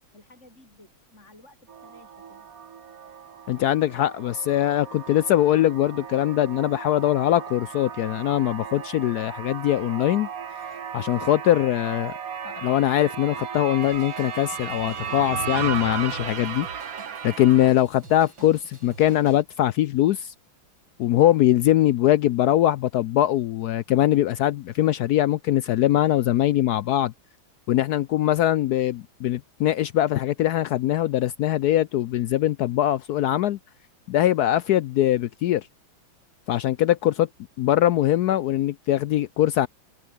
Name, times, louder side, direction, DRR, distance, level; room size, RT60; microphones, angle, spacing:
voice 1, 0.0-2.5, left 2 dB, 35° left, 5.5 m, -54 dB
sound 1, 1.7-17.7, right 7 dB, 50° right, 1.6 m, -35 dB
voice 2, 3.5-10.3 10.9-12.2 12.4-16.9 17.2-20.3 21.0-27.1 27.7-33.6 34.1-35.7 36.5-37.3 37.6-39.7, left 13 dB, 80° left, 0.9 m, -22 dB
Drum kit / Drum, 13.8-19.4, right 2 dB, 70° right, 7.6 m, -47 dB
open air
omnidirectional pair, 2.2 m